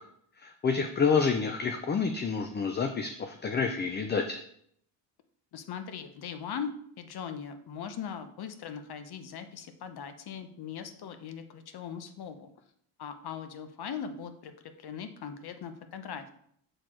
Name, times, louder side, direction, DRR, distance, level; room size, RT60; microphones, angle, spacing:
voice 1, 0.4-4.4, left 5 dB, 20° left, 6 dB, 0.5 m, -28 dB
voice 2, 5.5-6.7 7.0-12.5 13.0-16.3, left 7 dB, 50° left, 9 dB, 1.0 m, -40 dB
6.7 x 4.3 x 4.4 m, 0.67 s
cardioid pair, 100°, 50 cm